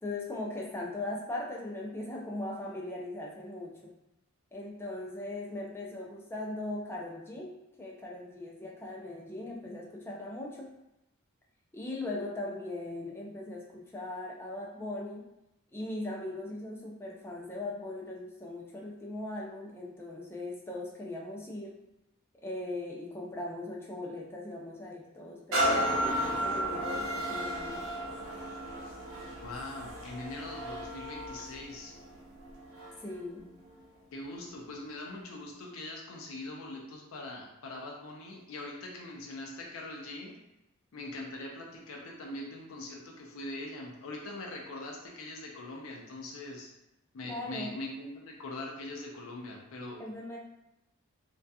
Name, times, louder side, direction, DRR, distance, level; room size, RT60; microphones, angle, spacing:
voice 1, 0.0-3.9 4.5-10.7 11.7-15.3 15.7-21.8 22.4-27.8 33.0-33.5 47.2-47.7 50.0-50.4, left 2 dB, 10° left, -3 dB, 0.4 m, -39 dB
sound 1, 25.5-33.1 33.7-33.8, equal, 80° right, 0.7 m, -33 dB
voice 2, 29.4-31.9 34.1-40.4 40.9-46.7 47.1-50.0, left 2 dB, 70° left, -1 dB, 0.5 m, -42 dB
2.6 x 2.2 x 2.3 m, 0.89 s
head